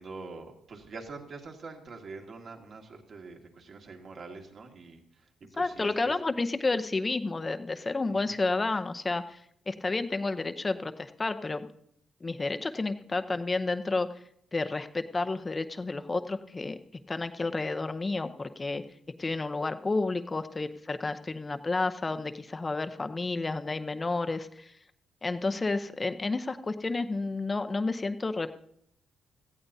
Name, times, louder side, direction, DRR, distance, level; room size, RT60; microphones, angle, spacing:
voice 1, 0.0-6.1 8.1-8.3, right 4 dB, 50° right, 2 dB, 2.0 m, -45 dB
voice 2, 5.6-9.4 9.7-11.7 12.2-14.1 14.5-16.8 17.1-18.8 19.2-24.7 25.2-28.5, left 3 dB, 20° left, 10 dB, 0.7 m, -31 dB
18.0 x 14.5 x 2.7 m, 0.71 s
cardioid pair, 110°, 0 cm